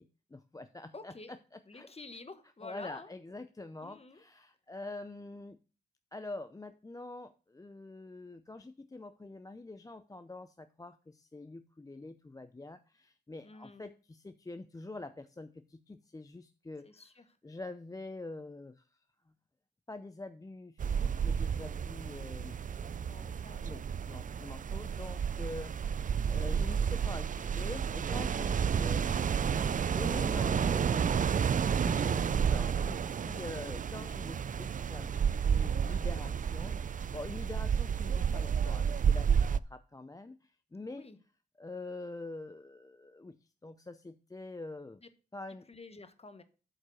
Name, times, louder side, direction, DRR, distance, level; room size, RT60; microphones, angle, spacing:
voice 1, 0.0-1.9 2.6-5.6 6.1-17.0 17.4-18.9 19.9-29.6 29.9-31.5 31.8-35.1 35.4-41.0 41.6-43.4 43.6-45.0 45.3-45.7, left 2 dB, 20° left, 10 dB, 0.6 m, -45 dB
voice 2, 0.9-1.3 1.7-3.1 3.8-4.2 13.4-13.9 16.8-17.2 23.0-23.8 24.7-25.2 25.9-26.4 29.4-29.9 32.1-32.6 40.9-41.2 45.0-45.1 45.7-46.4, left 3 dB, 35° left, 10 dB, 1.2 m, -50 dB
sound 1, 20.8-39.6, right 7 dB, 45° right, 0.4 m, -31 dB
8.2 x 5.2 x 6.2 m, 0.35 s
cardioid pair, 70°, 18 cm